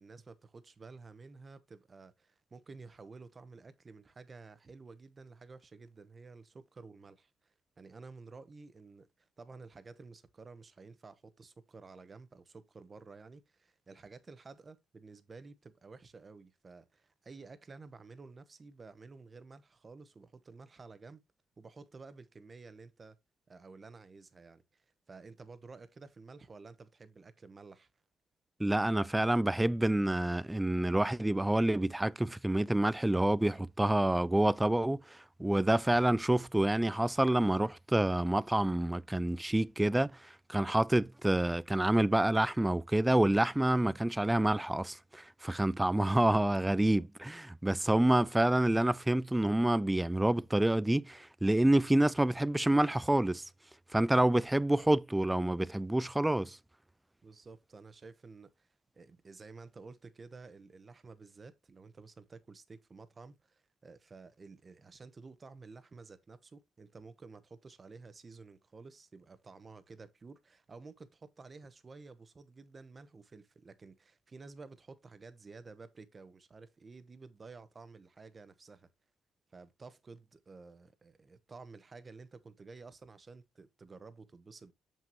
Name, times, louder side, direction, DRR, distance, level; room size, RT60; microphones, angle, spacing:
voice 1, 0.0-21.2 21.6-23.2 23.5-27.9 57.2-58.7 58.9-78.9 79.5-84.7, right 4 dB, 35° right, 1.0 m, -52 dB
voice 2, 28.6-40.1 40.5-53.4 53.9-56.6, right 1 dB, 10° right, 0.3 m, -28 dB
7.3 x 5.9 x 2.9 m
cardioid pair, 90°, 0 cm